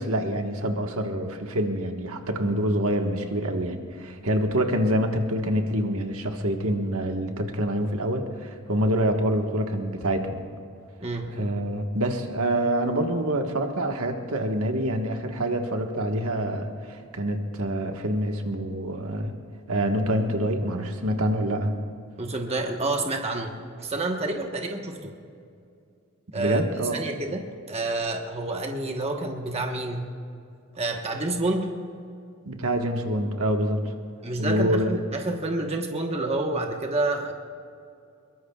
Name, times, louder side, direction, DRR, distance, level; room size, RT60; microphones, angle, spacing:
voice 1, 0.0-10.4 11.3-19.4 19.7-21.7 26.3-27.0 32.4-33.8 34.4-34.9, right 1 dB, 70° right, 3 dB, 1.5 m, -26 dB
voice 2, 11.0-11.3 22.2-23.5 23.8-25.1 26.3-26.6 26.9-30.1 30.7-31.7 34.2-37.3, right 2 dB, 30° right, 2 dB, 1.2 m, -28 dB
22.5 x 22.0 x 2.4 m, 2.4 s
head